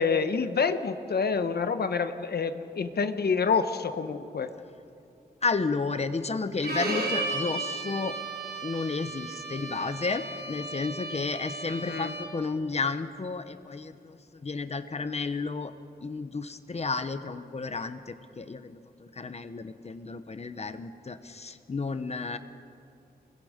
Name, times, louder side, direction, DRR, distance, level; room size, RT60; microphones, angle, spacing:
voice 1, 0.0-4.5 11.7-12.1, left 5 dB, 70° left, 9 dB, 1.1 m, -27 dB
voice 2, 5.4-8.2 8.6-15.7 16.0-22.4, left 4 dB, 40° left, 11 dB, 0.9 m, -32 dB
Bowed string instrument, 6.6-12.5, right 3 dB, 70° right, 3.7 m, -35 dB
29.5 x 21.5 x 5.1 m, 2.6 s
wide cardioid pair, 140°, 17 cm